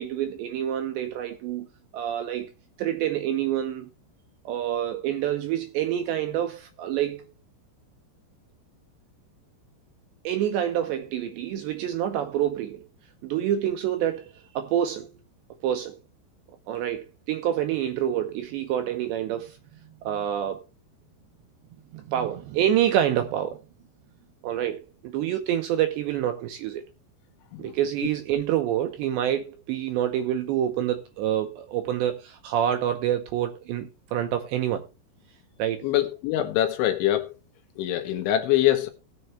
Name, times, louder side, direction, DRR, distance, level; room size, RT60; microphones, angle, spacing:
voice 1, 0.0-1.7 1.9-2.5 2.8-3.9 4.5-7.3 10.2-12.9 13.2-15.1 15.6-16.0 16.7-19.6 20.0-20.6 21.9-23.6 24.4-26.9 27.6-34.8 35.6-35.9, right 11 dB, 75° right, 2.7 m, -27 dB
voice 2, 35.8-37.4 37.8-38.9, left 13 dB, 75° left, 3.1 m, -24 dB
18.5 x 6.7 x 3.2 m
omnidirectional pair, 6.0 m